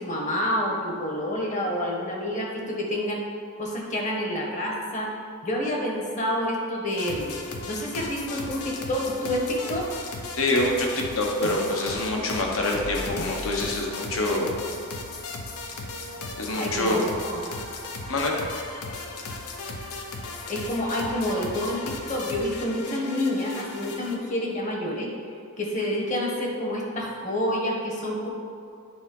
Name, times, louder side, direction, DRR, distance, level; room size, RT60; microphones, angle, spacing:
voice 1, 0.0-3.2 3.6-5.1 5.4-9.9 16.6-17.4 20.5-25.1 25.6-28.3, left 1 dB, 35° left, -1 dB, 1.2 m, -28 dB
sound 1, 6.9-24.2, left 3 dB, 90° left, 0.8 m, -36 dB
voice 2, 10.3-14.5 16.4-17.0 18.1-18.4, left 2 dB, 60° left, 0 dB, 1.2 m, -25 dB
9.2 x 3.9 x 5.4 m, 2.3 s
head